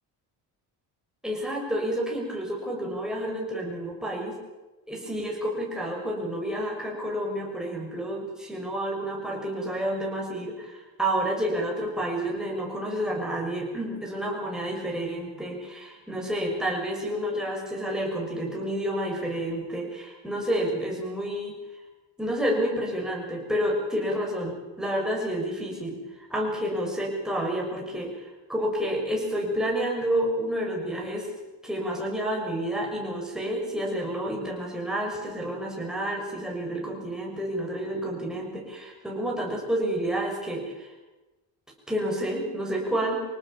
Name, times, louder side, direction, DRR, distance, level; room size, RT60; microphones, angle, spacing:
voice 1, 1.2-4.4 4.9-21.8 22.2-31.3 31.6-40.9 41.9-43.2, equal, ahead, -2 dB, 7.0 m, -29 dB
26.5 x 18.5 x 7.3 m, 1.1 s
cardioid pair, 150°, 41 cm